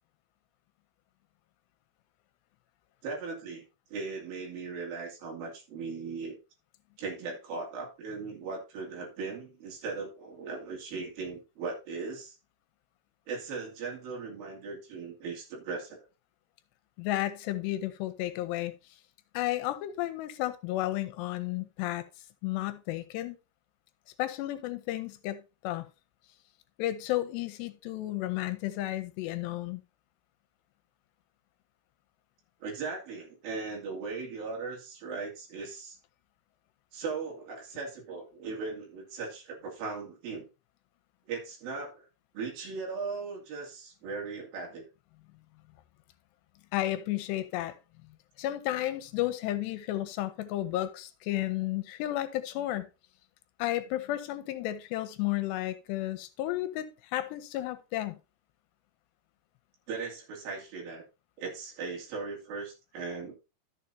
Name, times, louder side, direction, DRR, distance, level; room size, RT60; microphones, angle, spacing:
voice 1, 3.0-6.4 7.0-12.4 13.3-16.0 32.6-36.0 36.9-40.5 41.3-42.1 42.3-44.8 59.9-61.0 61.4-63.4, right 4 dB, 60° right, 4.3 m, -38 dB
voice 2, 17.0-18.7 19.3-22.1 22.4-23.4 24.2-25.9 26.8-29.8 46.7-47.8 48.4-52.9 53.6-58.2, left 15 dB, 80° left, 2.8 m, -32 dB
12.5 x 7.1 x 2.7 m
omnidirectional pair, 5.0 m